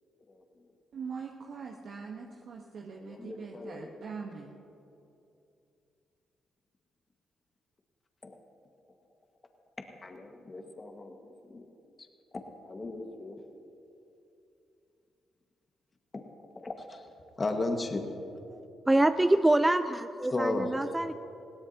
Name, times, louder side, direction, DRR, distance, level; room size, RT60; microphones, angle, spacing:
voice 1, 0.9-4.5, right 5 dB, 65° right, 0 dB, 1.1 m, -42 dB
voice 2, 2.9-3.9 8.2-8.3 10.0-11.1 11.4-11.7 12.7-13.4 16.1-17.1 17.4-18.0 20.3-20.7, left 2 dB, 35° left, 4 dB, 1.6 m, -35 dB
voice 3, 18.9-21.1, right 1 dB, 15° right, 10 dB, 0.5 m, -25 dB
20.5 x 17.0 x 2.9 m, 2.7 s
hypercardioid pair, 50°, 0 cm